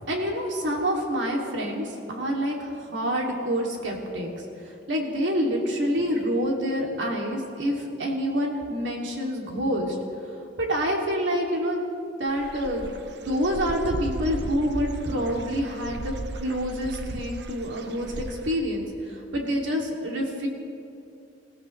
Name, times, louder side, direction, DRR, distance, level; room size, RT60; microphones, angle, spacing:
voice 1, 0.1-4.3 4.9-10.0 10.6-11.8 12.2-12.9 13.2-16.1 16.4-20.5, equal, 80° right, -1 dB, 2.7 m, -27 dB
Dog / Bird, 12.3-18.5, right 2 dB, 65° right, 0.7 m, -36 dB
28.0 x 16.0 x 3.3 m, 2.6 s
head